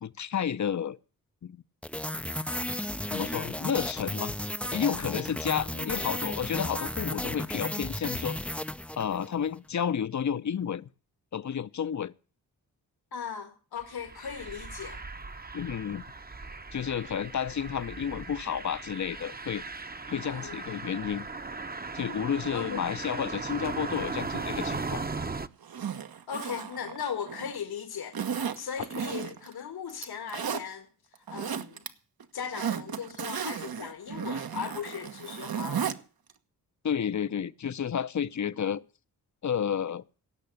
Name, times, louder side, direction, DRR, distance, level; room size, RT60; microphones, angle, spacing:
voice 1, 0.0-1.0 1.4-1.6 3.1-4.3 4.7-8.6 9.0-10.9 11.3-12.1 15.5-16.0 16.7-19.6 20.1-21.2 21.9-25.0 36.8-38.8 39.4-40.0, left 8 dB, 50° left, 0.9 m, -31 dB
sound 1, 1.8-9.4, left 1 dB, 5° left, 0.6 m, -34 dB
voice 2, 5.7-6.1 13.1-15.0 20.2-20.6 22.5-22.8 26.3-28.2 28.6-31.8 32.3-35.9, left 7 dB, 75° left, 1.8 m, -38 dB
sound 2, 13.8-25.5, right 3 dB, 25° right, 1.0 m, -38 dB
Zipper (clothing), 25.6-27.6 28.1-29.5 29.9-30.6 31.1-31.9 32.2-36.0 36.3-36.4, right 7 dB, 65° right, 1.4 m, -34 dB
17.5 x 6.7 x 8.2 m
cardioid pair, 55°, 38 cm